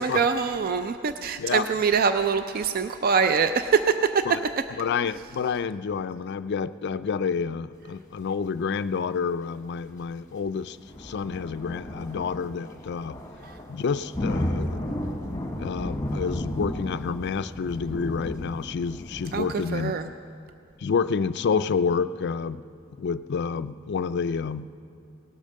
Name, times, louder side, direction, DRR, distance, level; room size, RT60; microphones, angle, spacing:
voice 1, 0.0-4.2 13.4-13.5 19.3-20.0, right 6 dB, 45° right, 10 dB, 0.4 m, -24 dB
voice 2, 4.7-13.2 13.7-14.8 15.6-20.1 20.8-22.6 23.0-24.7, left 5 dB, 55° left, 14 dB, 0.4 m, -29 dB
sound 1, 10.8-19.5, left 1 dB, 15° left, 1.2 m, -33 dB
18.0 x 8.6 x 6.4 m, 2.5 s
head